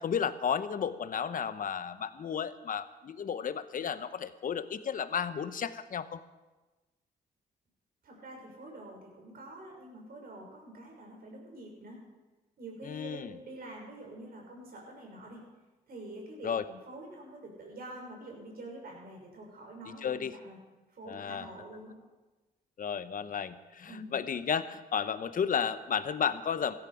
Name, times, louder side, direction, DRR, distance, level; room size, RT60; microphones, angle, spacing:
voice 1, 0.0-6.2 12.8-13.3 16.4-16.6 20.0-20.3 21.1-21.5 22.8-26.7, left 7 dB, 55° left, 13 dB, 0.9 m, -33 dB
voice 2, 8.0-12.0 12.6-15.4 15.9-20.6 20.9-21.9 23.9-24.2, right 1 dB, 65° right, -1 dB, 6.2 m, -46 dB
16.0 x 14.5 x 5.0 m, 1.2 s
cardioid pair, 75°, 17 cm